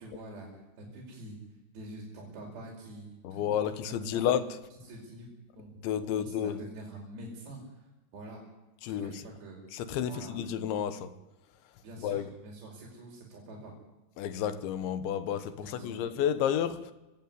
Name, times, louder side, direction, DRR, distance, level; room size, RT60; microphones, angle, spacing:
voice 1, 0.0-1.4 1.7-4.3 4.9-5.7 6.0-8.4 8.9-9.6 10.0-10.4 11.8-13.8 15.6-16.0, right 1 dB, 60° right, 7.2 m, -46 dB
voice 2, 3.2-4.4 5.8-6.6 8.8-9.2 9.7-11.1 12.0-12.3 14.2-16.9, left 9 dB, 75° left, 3.5 m, -31 dB
27.5 x 17.0 x 9.8 m
omnidirectional pair, 5.5 m